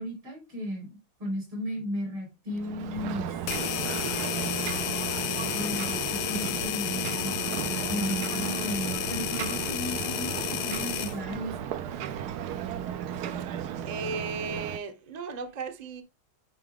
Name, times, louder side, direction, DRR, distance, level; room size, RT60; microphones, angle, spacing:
voice 1, 0.0-3.3 5.5-7.4 7.9-11.5, left 1 dB, 85° right, 5.2 m, -35 dB
Ocean, 2.5-14.8, right 9 dB, 70° right, 1.0 m, -34 dB
sound 1, 3.5-11.2, left 13 dB, 75° left, 1.1 m, -32 dB
voice 2, 4.0-4.7 13.8-16.0, right 4 dB, 35° right, 0.7 m, -36 dB
9.5 x 4.8 x 3.7 m
omnidirectional pair, 2.3 m